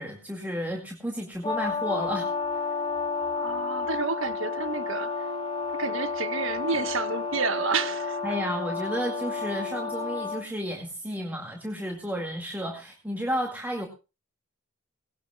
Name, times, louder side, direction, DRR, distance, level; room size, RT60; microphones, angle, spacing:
voice 1, 0.0-2.3 8.2-13.9, equal, 10° right, 2.1 m, -32 dB
Brass instrument, 1.4-10.5, left 5 dB, 25° left, 0.8 m, -32 dB
Brass instrument 2, 1.8-10.2, left 1 dB, 85° right, 2.6 m, -37 dB
voice 2, 3.4-5.3 5.7-8.2, right 5 dB, 70° right, 1.3 m, -30 dB
19.5 x 18.0 x 2.3 m
head